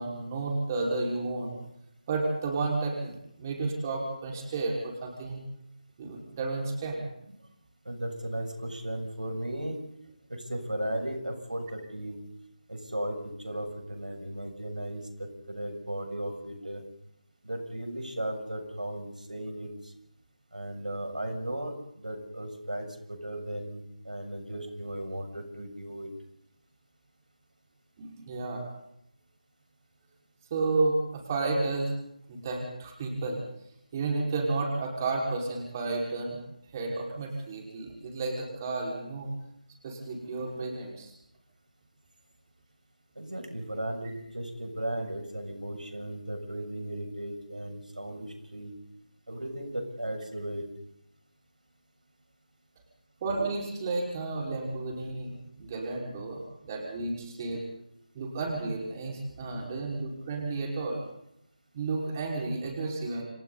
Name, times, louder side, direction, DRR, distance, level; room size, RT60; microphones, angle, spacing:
voice 1, 0.0-1.6 2.1-5.4 6.0-7.0 28.0-28.6 30.5-31.9 32.3-33.4 33.9-36.4 36.7-39.3 39.8-41.1 53.2-57.7 58.1-61.0 61.7-63.2, right 3 dB, 25° right, -1 dB, 5.5 m, -32 dB
voice 2, 7.9-9.8 10.3-12.2 12.7-16.8 17.4-19.9 20.5-26.1 43.2-48.7 49.3-50.7, right 1 dB, 80° right, 4 dB, 7.4 m, -36 dB
29.5 x 29.0 x 4.2 m, 0.77 s
figure-of-eight pair, 160°, 4 cm